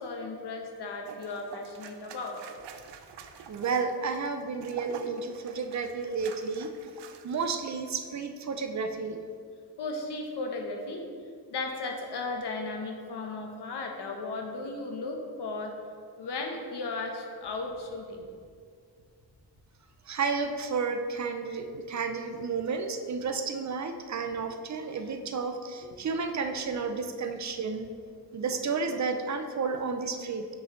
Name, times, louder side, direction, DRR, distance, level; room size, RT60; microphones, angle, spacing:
voice 1, 0.0-2.4 9.8-11.1 11.5-15.8 16.2-18.2, left 3 dB, 75° left, 2 dB, 1.0 m, -35 dB
sound 1, 1.0-7.5 7.9-8.1, right 6 dB, 90° right, 0.6 m, -47 dB
voice 2, 3.5-6.7 7.2-9.3 20.1-27.9 28.3-30.5, right 4 dB, 45° right, 7 dB, 0.5 m, -32 dB
7.5 x 6.3 x 3.1 m, 2.1 s
wide cardioid pair, 165°, 41 cm